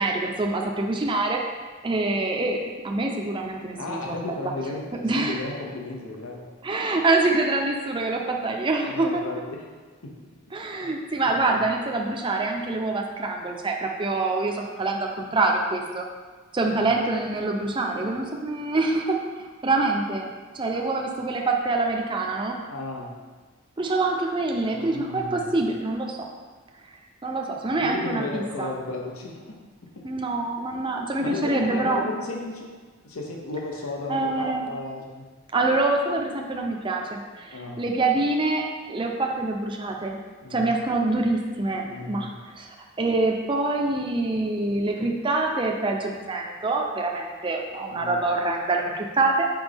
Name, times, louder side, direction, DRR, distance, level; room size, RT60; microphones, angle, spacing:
voice 1, 0.0-1.4 1.8-2.6 2.8-4.1 5.0-5.4 6.6-9.2 10.5-16.0 16.5-20.3 20.5-22.6 23.8-26.3 27.2-28.7 30.0-32.0 34.1-34.7 35.5-40.2 40.5-42.7 43.0-49.5, right 2 dB, 25° right, 1 dB, 0.5 m, -25 dB
voice 2, 3.8-6.5 8.4-8.5 8.9-9.6 10.0-10.1 10.8-10.9 11.5-11.6 16.8-17.0 20.7-20.9 22.7-23.1 24.7-25.5 27.8-29.5 30.0-30.1 31.2-32.7 33.0-35.2 37.5-37.8 40.4-40.7 41.8-42.3 47.9-48.2, left 2 dB, 80° left, 0 dB, 0.9 m, -34 dB
6.1 x 4.9 x 3.4 m, 1.4 s
head